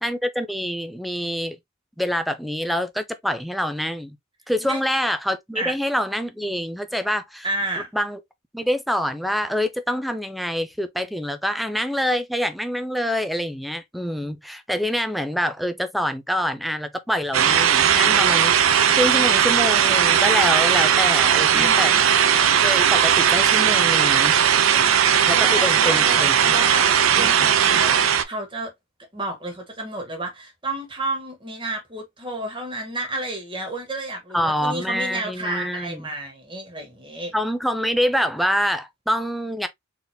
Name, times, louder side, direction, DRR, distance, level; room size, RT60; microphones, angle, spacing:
voice 1, 0.0-1.6 2.0-4.2 4.5-7.5 7.9-8.2 8.5-18.5 18.9-22.2 22.6-24.3 25.3-26.5 27.1-27.3 34.3-36.1 37.3-39.7, equal, ahead, 0.5 m, -26 dB
voice 2, 7.4-7.9 21.5-22.2 24.7-28.7 29.1-37.3, right 2 dB, 25° right, 1.7 m, -31 dB
sound 1, 17.3-28.2, right 8 dB, 85° right, 0.6 m, -18 dB
4.0 x 3.5 x 2.7 m
head